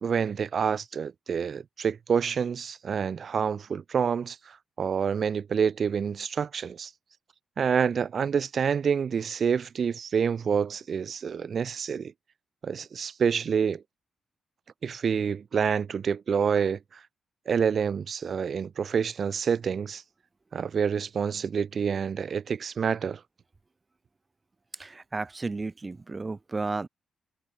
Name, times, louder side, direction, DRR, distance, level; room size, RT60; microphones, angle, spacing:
voice 1, 0.0-6.9 7.6-12.1 12.6-13.8 14.8-17.0 17.5-20.0 20.5-23.2, right 6 dB, 60° right, 0.5 m, -27 dB
voice 2, 24.8-26.9, right 3 dB, 30° right, 1.9 m, -33 dB
supercardioid pair, 60°, 0 cm